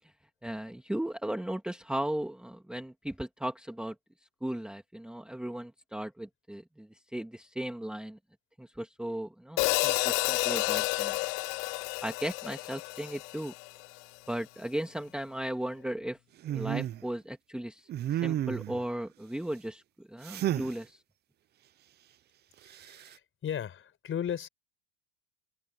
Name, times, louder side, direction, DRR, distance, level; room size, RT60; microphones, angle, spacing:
voice 1, 0.4-4.0 4.4-8.2 8.6-11.2 12.0-13.5 14.3-16.2 16.5-21.0, right 1 dB, ahead, 1.8 m, -36 dB
Hi-hat, 9.6-13.9, left 29 dB, 55° left, 0.5 m, -30 dB
sound 1, 16.4-17.0 17.9-18.8 20.2-20.7 22.7-23.1, right 12 dB, 25° right, 0.5 m, -32 dB
voice 2, 22.6-24.5, left 9 dB, 30° left, 5.4 m, -36 dB
supercardioid pair, 135°, 42 cm